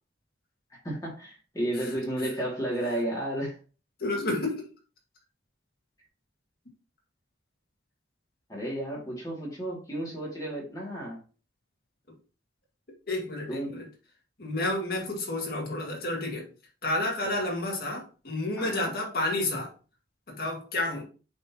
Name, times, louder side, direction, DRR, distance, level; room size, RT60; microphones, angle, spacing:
voice 1, 0.8-3.6 8.5-11.2 13.5-13.7 18.6-18.9, right 1 dB, 20° left, 2.4 m, -32 dB
voice 2, 4.0-4.7 13.1-13.9 14.4-16.5 16.8-19.7 20.3-21.0, left 2 dB, 55° left, 2.2 m, -30 dB
8.1 x 4.3 x 3.0 m
head